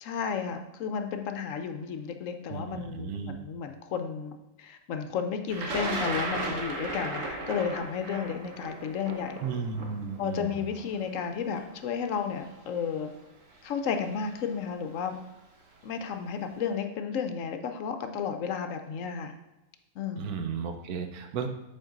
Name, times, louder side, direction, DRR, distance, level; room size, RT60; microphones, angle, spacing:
voice 1, 0.0-9.4 10.2-13.1 13.6-15.2 15.8-19.3 20.0-20.3, left 7 dB, 70° left, 7 dB, 0.9 m, -33 dB
voice 2, 2.5-3.4 9.4-10.7 20.2-21.5, right 6 dB, 85° right, 6 dB, 1.2 m, -34 dB
Thunder, 5.5-11.5 12.4-12.5 13.7-13.9 14.2-14.7, right 2 dB, 60° right, 1.4 m, -35 dB
7.5 x 4.5 x 3.9 m, 0.99 s
omnidirectional pair, 1.5 m